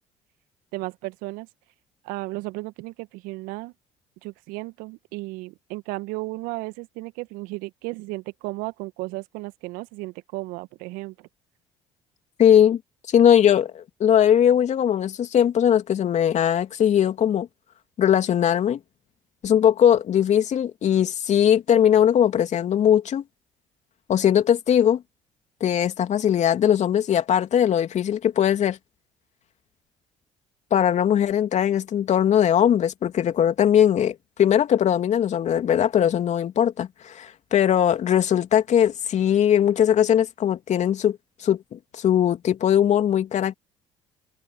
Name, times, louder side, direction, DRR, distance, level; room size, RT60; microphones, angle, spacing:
voice 1, 0.7-1.5 2.0-3.7 4.2-11.3, right 22 dB, 70° right, 1.7 m, -34 dB
voice 2, 12.4-12.8 13.1-17.5 18.0-18.8 19.4-23.2 24.1-25.0 25.6-28.8 30.7-41.2 41.4-43.5, left 9 dB, 50° left, 3.1 m, -20 dB
hypercardioid pair, 55°, 15 cm